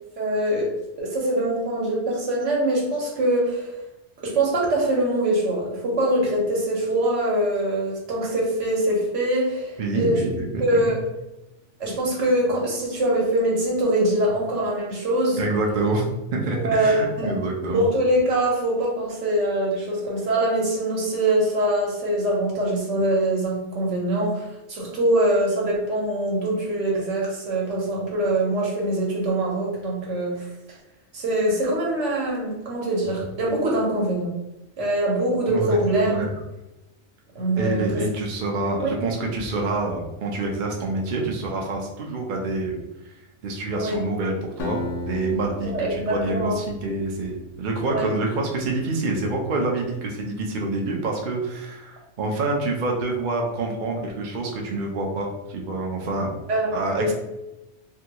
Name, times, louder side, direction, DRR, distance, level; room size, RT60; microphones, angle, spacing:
voice 1, 0.2-0.7 1.0-3.7 4.2-10.2 10.6-11.0 11.8-15.4 16.5-17.3 17.7-24.4 24.7-30.4 31.1-34.3 34.8-36.1 37.3-38.0 38.8-38.9 43.7-44.0 45.6-46.6 47.9-48.1 56.5-57.1, right 1 dB, 70° right, -3 dB, 1.3 m, -23 dB
voice 2, 9.8-10.6 15.4-16.1 16.3-17.8 35.5-36.3 37.6-42.8 43.4-56.3 56.7-57.1, right 2 dB, 55° right, 0 dB, 0.5 m, -27 dB
Acoustic guitar, 44.6-47.6, left 2 dB, 75° left, 0.9 m, -34 dB
3.4 x 2.2 x 2.8 m, 0.96 s
omnidirectional pair, 1.3 m